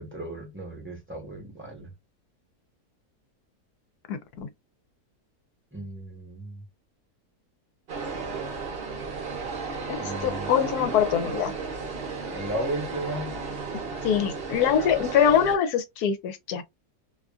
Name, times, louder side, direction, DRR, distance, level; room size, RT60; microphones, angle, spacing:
voice 1, 0.0-1.9 5.7-6.6 10.0-10.5 10.8-10.9 12.3-13.4, right 1 dB, 10° right, 0.9 m, -35 dB
voice 2, 4.1-4.5 9.9-11.5 14.0-16.6, left 8 dB, 75° left, 1.1 m, -24 dB
sound 1, 7.9-15.6, right 4 dB, 50° right, 0.8 m, -34 dB
2.8 x 2.4 x 2.3 m
omnidirectional pair, 1.7 m